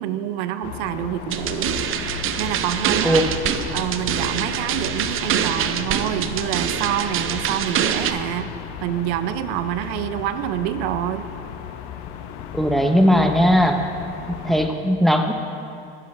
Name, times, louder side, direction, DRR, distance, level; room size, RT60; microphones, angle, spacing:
voice 1, 0.0-1.8 2.4-3.2 3.7-8.5 8.8-11.3, right 12 dB, 80° right, 11 dB, 0.6 m, -27 dB
sound 1, 0.6-14.7, left 9 dB, 75° left, 0.7 m, -35 dB
sound 2, 1.3-8.1, right 9 dB, 40° right, 0.6 m, -25 dB
voice 2, 12.5-13.8 14.4-15.3, equal, ahead, 4 dB, 0.7 m, -18 dB
11.5 x 10.0 x 3.2 m, 2.6 s
supercardioid pair, 100°, 31 cm